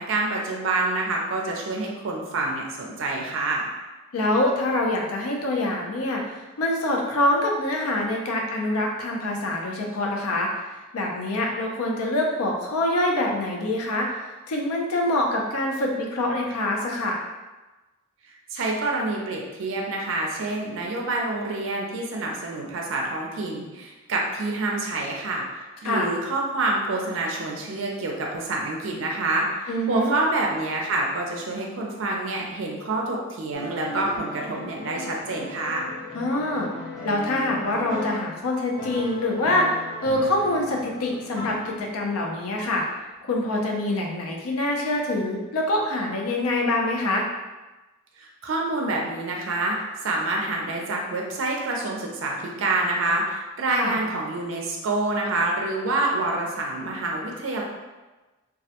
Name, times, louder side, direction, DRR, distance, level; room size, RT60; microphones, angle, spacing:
voice 1, 0.0-3.7 18.5-35.9 48.2-49.8 50.0-57.6, right 2 dB, 60° right, -1 dB, 0.4 m, -27 dB
voice 2, 4.1-10.5 10.9-17.2 25.8-26.1 29.7-30.2 36.1-36.7 37.0-39.7 40.0-42.8 43.2-47.3 53.7-54.0, left 1 dB, 85° left, 0 dB, 0.5 m, -25 dB
sound 1, 33.5-38.4 38.8-42.1, left 2 dB, 15° left, 0.7 m, -37 dB
2.2 x 2.1 x 2.7 m, 1.1 s
head